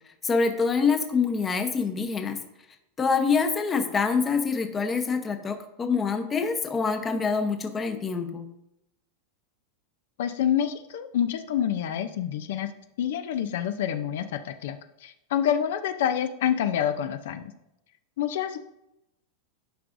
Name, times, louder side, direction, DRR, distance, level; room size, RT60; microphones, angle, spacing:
voice 1, 0.2-2.4 3.0-8.4, left 5 dB, 15° left, 6 dB, 0.8 m, -25 dB
voice 2, 10.2-12.7 13.0-17.5 18.2-18.6, left 9 dB, 75° left, 9 dB, 0.5 m, -27 dB
11.5 x 4.8 x 2.6 m, 0.86 s
supercardioid pair, 150°, 0 cm